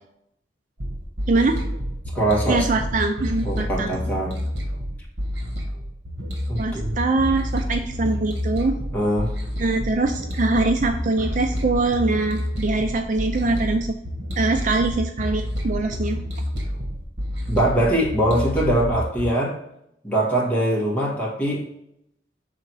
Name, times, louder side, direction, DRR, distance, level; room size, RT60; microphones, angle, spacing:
sound 1, 0.8-19.2, equal, 80° right, 1.4 m, -29 dB
voice 1, 1.3-1.6 2.5-3.9 6.6-8.8 9.6-14.0 14.4-16.2, right 3 dB, 45° right, 5 dB, 0.4 m, -23 dB
voice 2, 2.1-2.7 3.4-4.4 6.5-6.9 8.9-9.3 17.5-19.6 20.0-21.7, right 1 dB, 10° left, -4 dB, 1.7 m, -22 dB
5.9 x 3.8 x 4.6 m, 0.78 s
head